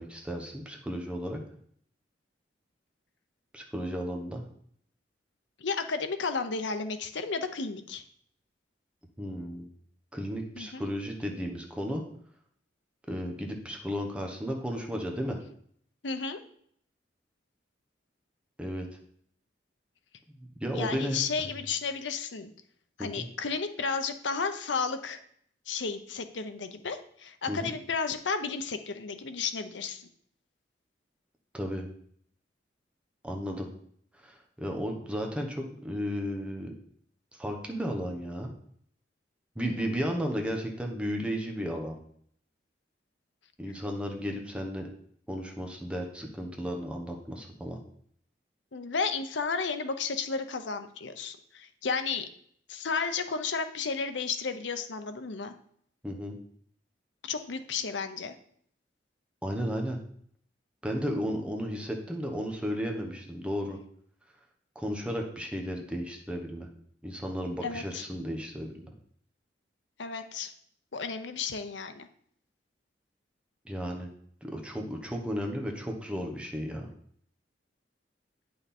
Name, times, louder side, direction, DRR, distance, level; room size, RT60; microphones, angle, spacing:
voice 1, 0.0-1.4 3.5-4.4 9.2-9.7 10.1-12.0 13.1-15.4 18.6-18.9 20.3-21.2 23.0-23.3 27.5-27.7 31.5-31.9 33.2-33.7 34.2-36.7 37.4-38.5 39.5-42.0 43.6-44.9 45.3-47.8 56.0-56.3 59.4-60.0 60.8-63.8 64.7-66.7 67.0-68.8 73.6-74.1 74.4-76.9, equal, 5° right, 1 dB, 1.1 m, -34 dB
voice 2, 5.6-8.0 10.6-10.9 16.0-16.4 20.7-22.5 23.0-25.2 25.7-30.0 39.6-39.9 48.7-52.2 52.7-55.5 57.2-58.3 67.6-68.0 70.0-70.5 70.9-72.1, left 5 dB, 80° left, 8 dB, 0.7 m, -33 dB
9.0 x 5.7 x 4.3 m, 0.64 s
head